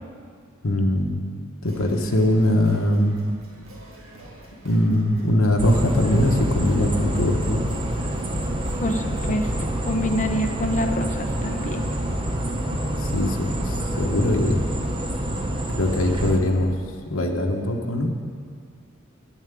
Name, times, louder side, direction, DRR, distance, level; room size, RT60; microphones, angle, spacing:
voice 1, 0.6-1.3 1.6-3.2 4.6-7.6 13.0-14.7 15.7-16.7 17.1-18.1, left 1 dB, 75° left, 2 dB, 1.2 m, -21 dB
Singing, 1.6-9.6, right 1 dB, 70° right, 1.8 m, -46 dB
sound 1, 5.6-16.4, right 1 dB, 25° right, 0.9 m, -27 dB
voice 2, 8.8-9.5 9.8-11.8, left 1 dB, 35° left, 4 dB, 0.9 m, -26 dB
10.0 x 7.3 x 9.2 m, 2.1 s
head